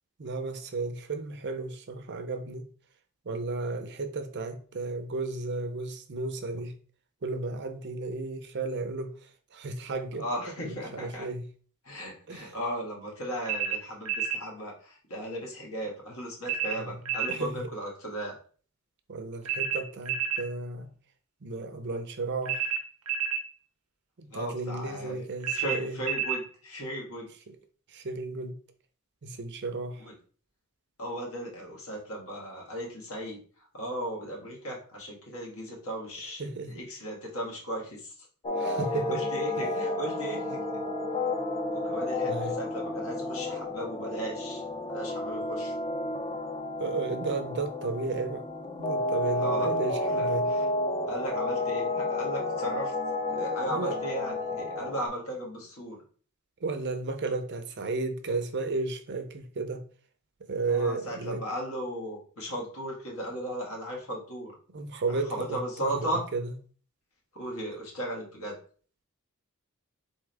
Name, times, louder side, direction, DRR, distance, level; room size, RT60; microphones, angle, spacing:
voice 1, 0.2-2.7 3.2-6.7 7.2-10.3 10.7-11.4 12.3-12.5 16.7-17.0 17.3-17.5 19.1-20.9 21.4-22.7 24.2-26.0 27.5-27.6 27.9-28.6 29.2-30.1 36.4-36.8 38.5-39.3 39.5-39.7 42.2-42.6 46.8-48.5 48.8-50.5 53.7-54.0 56.6-59.9 60.5-61.4 64.7-66.5, right 3 dB, 50° right, 0.6 m, -33 dB
voice 2, 10.2-11.3 11.8-18.4 24.3-25.2 25.5-27.3 30.0-30.1 31.0-38.3 39.1-40.8 41.7-44.6 44.9-45.7 49.4-49.7 50.1-50.7 51.1-52.9 53.3-56.0 60.7-64.5 65.1-66.2 67.3-68.6, right 1 dB, 70° left, 1.7 m, -36 dB
sound 1, 13.5-14.4 16.4-17.4 19.4-20.5 22.4-23.5 25.4-26.4, right 7 dB, 85° right, 0.8 m, -30 dB
sound 2, 38.4-55.1, left 2 dB, 25° left, 0.5 m, -31 dB
4.2 x 3.6 x 3.3 m
head